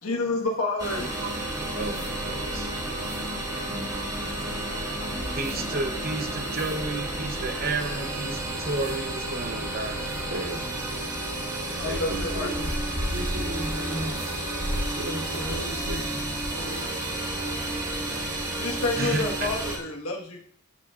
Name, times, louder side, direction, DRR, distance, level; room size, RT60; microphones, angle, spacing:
voice 1, 0.0-1.2 11.7-12.5 18.6-20.4, left 2 dB, 80° left, 0 dB, 1.6 m, -29 dB
sound 1, 0.8-19.8, right 1 dB, 20° right, 1.8 m, -31 dB
voice 2, 1.7-2.7 5.3-10.0 19.0-19.5, right 3 dB, 45° right, 5 dB, 0.9 m, -32 dB
sound 2, 1.9-2.1 3.0-3.2 5.3-5.6 6.4-6.8 8.3-8.4 8.7-9.0 9.6-9.7 10.0-10.3 12.6-12.8 14.1-14.4, left 1 dB, ahead, 3.8 m, -49 dB
voice 3, 10.3-10.6 11.8-12.7 13.1-14.2 14.9-16.2 16.5-16.9, right 1 dB, 75° right, -4 dB, 2.8 m, -34 dB
sound 3, 11.8-16.1 16.3-16.7, equal, 25° left, 2.5 m, -34 dB
12.5 x 6.6 x 2.5 m, 0.64 s
head